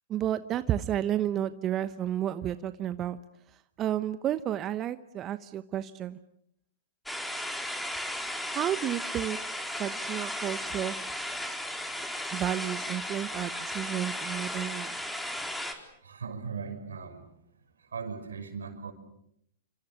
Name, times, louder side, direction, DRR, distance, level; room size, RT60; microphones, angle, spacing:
voice 1, 0.1-3.2 3.8-6.2 8.5-9.4 9.8-10.9 12.3-14.9, right 11 dB, 30° right, 12 dB, 1.0 m, -31 dB
sound 1, 7.1-15.7, left 1 dB, 5° left, 4.1 m, -35 dB
voice 2, 16.0-17.2 17.9-18.9, right 5 dB, 80° right, 7 dB, 5.9 m, -38 dB
29.5 x 26.0 x 7.2 m, 0.73 s
hypercardioid pair, 105°, 0 cm